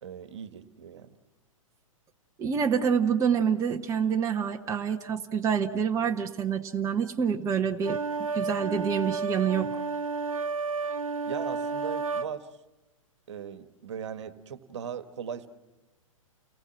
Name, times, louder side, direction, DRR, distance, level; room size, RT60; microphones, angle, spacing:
voice 1, 0.0-1.1 11.2-12.5 13.3-15.5, right 8 dB, 55° right, 11 dB, 1.6 m, -38 dB
voice 2, 2.4-8.0 8.3-9.8, right 7 dB, 20° right, 3 dB, 1.1 m, -27 dB
sound 1, 7.8-12.3, right 4 dB, 75° right, 1.0 m, -31 dB
30.0 x 19.5 x 7.6 m, 1.0 s
figure-of-eight pair, 110°, 18 cm